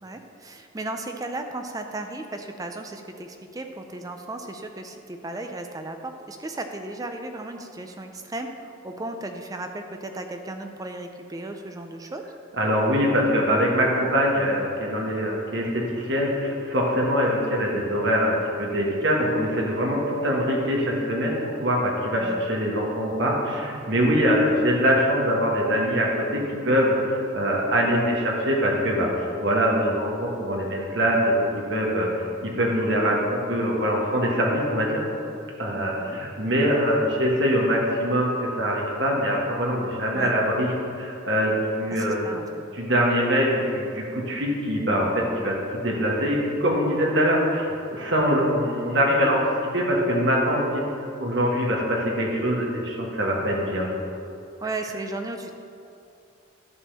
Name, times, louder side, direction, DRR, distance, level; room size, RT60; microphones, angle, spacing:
voice 1, 0.0-12.2 22.2-22.4 35.8-36.2 40.1-40.3 41.9-42.6 54.6-55.5, right 2 dB, 20° right, 5 dB, 0.4 m, -35 dB
voice 2, 12.6-32.1 32.4-35.0 35.6-42.3 42.7-49.4 49.7-50.8 51.2-53.9, equal, 60° right, -2 dB, 1.6 m, -23 dB
11.0 x 3.7 x 7.3 m, 2.6 s
head